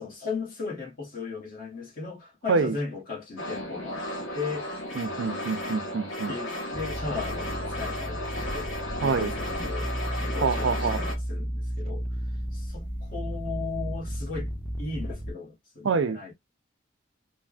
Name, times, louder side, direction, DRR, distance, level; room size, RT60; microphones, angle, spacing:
voice 1, 0.0-4.0 4.3-4.7 6.3-9.9 10.2-12.1 12.5-14.5 14.8-16.3, left 4 dB, 45° left, 1.1 m, -36 dB
sound 1, 3.4-11.1, left 1 dB, 65° left, 0.9 m, -34 dB
voice 2, 5.0-6.3 9.0-9.3 10.4-11.0 15.8-16.2, right 5 dB, 65° right, 0.4 m, -26 dB
sound 2, 6.7-15.3, equal, 10° right, 0.4 m, -33 dB
3.3 x 2.0 x 2.4 m
head